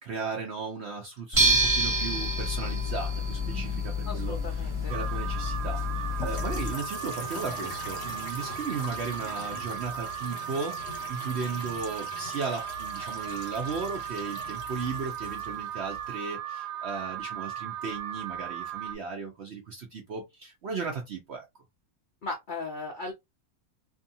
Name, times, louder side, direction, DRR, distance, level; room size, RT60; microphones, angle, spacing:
voice 1, 0.0-21.5, right 5 dB, 65° right, 0.6 m, -36 dB
sound 1, 1.3-6.7, equal, 25° right, 1.1 m, -28 dB
voice 2, 4.1-4.9 22.2-23.1, left 3 dB, 75° left, 0.4 m, -37 dB
Alarm, 4.9-19.0, right 11 dB, 90° right, 1.3 m, -37 dB
sound 2, 6.1-16.3, left 4 dB, 60° left, 0.9 m, -42 dB
2.7 x 2.4 x 2.6 m
omnidirectional pair, 1.7 m